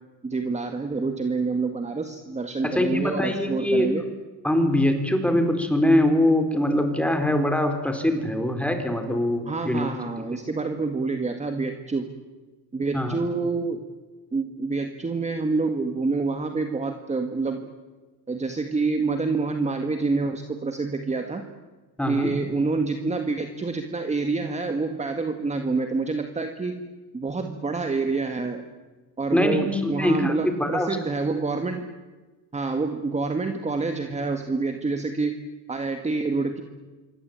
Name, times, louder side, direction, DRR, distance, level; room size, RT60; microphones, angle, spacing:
voice 1, 0.2-4.0 9.5-12.1 12.7-13.8 14.3-17.7 18.3-21.5 22.1-26.9 27.1-28.6 29.2-31.9 32.5-35.4 35.7-36.6, right 3 dB, 20° right, 6 dB, 1.9 m, -27 dB
voice 2, 2.6-3.9 4.4-9.9 12.9-13.2 22.0-22.3 29.3-31.0, left 1 dB, 5° left, 6 dB, 4.4 m, -23 dB
26.5 x 23.5 x 9.0 m, 1.2 s
cardioid pair, 130°, 36 cm